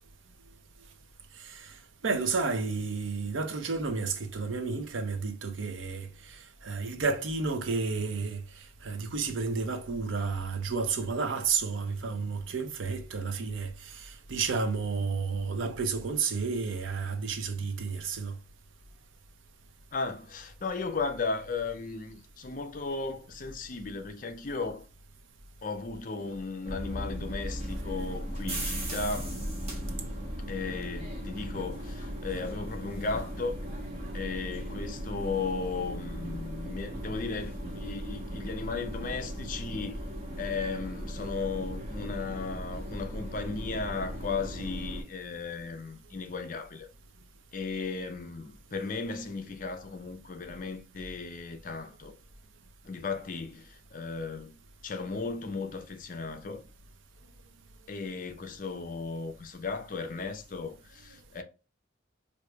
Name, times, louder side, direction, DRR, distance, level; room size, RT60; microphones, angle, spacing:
voice 1, 1.4-1.7 2.0-8.4 8.8-18.3, right 4 dB, 80° right, 0.6 m, -31 dB
voice 2, 19.9-24.9 25.6-29.4 30.5-33.6 34.1-40.0 40.4-46.9 47.5-52.1 52.8-56.6 57.9-61.4, left 4 dB, 45° left, 0.5 m, -36 dB
sound 1, 26.6-45.0, equal, 35° right, 1.0 m, -37 dB
4.6 x 2.6 x 2.3 m
head